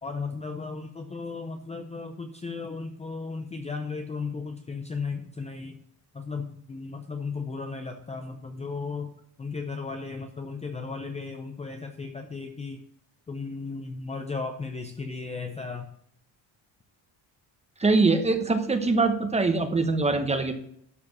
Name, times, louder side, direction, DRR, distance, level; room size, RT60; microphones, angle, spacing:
voice 1, 0.0-5.8 6.1-9.1 9.4-12.8 13.3-15.9, left 4 dB, 15° left, 5 dB, 0.6 m, -35 dB
voice 2, 17.8-20.5, right 3 dB, 15° right, 7 dB, 1.0 m, -23 dB
12.0 x 5.0 x 6.1 m, 0.68 s
cardioid pair, 170°, 43 cm